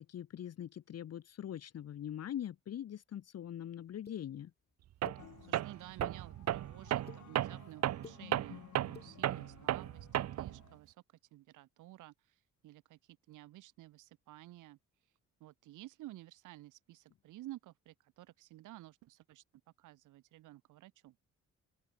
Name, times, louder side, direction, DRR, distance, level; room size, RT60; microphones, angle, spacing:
voice 1, 0.0-4.5, left 10 dB, 55° left, 1.2 m, -42 dB
sound 1, 4.1-4.2 5.0-5.2 5.8-6.2 6.8-7.2 7.9-8.2 8.8-9.1, left 5 dB, 35° left, 2.5 m, -50 dB
Tools, 5.0-5.3 5.5-10.6, right 13 dB, 60° right, 0.7 m, -34 dB
sound 2, 5.2-10.8, left 13 dB, 75° left, 1.7 m, -57 dB
voice 2, 5.4-14.8 15.4-19.4 19.8-21.1, right 16 dB, 85° right, 1.5 m, -53 dB
open air
cardioid pair, 90°, 30 cm